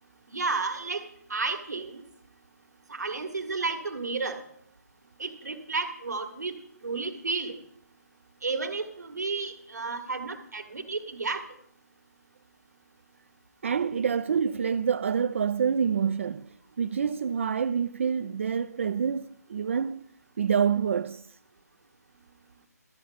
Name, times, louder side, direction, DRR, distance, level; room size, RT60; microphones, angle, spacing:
voice 1, 0.3-2.0 2.9-4.4 5.2-6.5 6.8-7.5 8.4-11.4, right 4 dB, 75° right, 2.0 m, -32 dB
voice 2, 13.6-16.5 16.8-20.0 20.4-21.4, right 7 dB, 45° right, 0.3 m, -27 dB
13.5 x 8.1 x 5.6 m
figure-of-eight pair, 150°, 9 cm